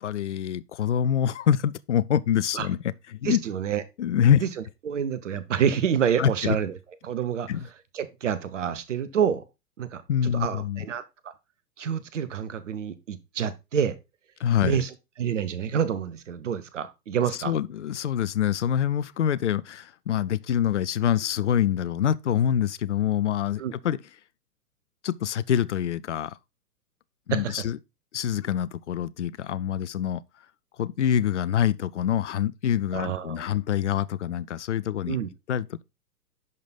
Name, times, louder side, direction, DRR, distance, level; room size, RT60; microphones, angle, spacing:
voice 1, 0.0-2.8 3.1-3.4 4.0-4.4 6.2-6.6 7.5-7.7 10.1-10.8 14.4-14.8 17.4-24.0 25.0-26.3 27.3-27.8 28.1-30.2 30.8-35.2 35.5-35.8, left 9 dB, 50° left, 0.6 m, -25 dB
voice 2, 3.2-3.8 4.4-4.5 4.8-6.7 7.0-7.5 7.9-9.4 9.8-10.0 10.3-11.3 11.8-14.0 14.6-14.9 15.2-17.5 23.6-23.7 27.3-27.6 32.9-33.5 35.1-35.3, right 8 dB, 50° right, 1.0 m, -27 dB
10.5 x 5.2 x 4.0 m
figure-of-eight pair, 115°, 48 cm